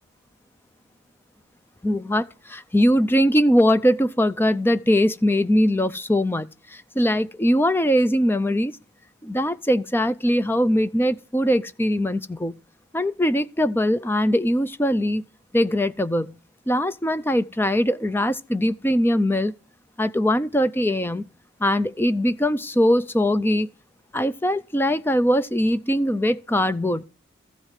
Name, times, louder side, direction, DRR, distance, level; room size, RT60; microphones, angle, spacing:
voice 1, 1.8-8.8 9.2-12.6 12.9-15.2 15.5-16.3 16.7-19.5 20.0-21.3 21.6-23.7 24.1-27.0, equal, 10° left, 0.5 m, -21 dB
14.5 x 4.9 x 9.0 m
head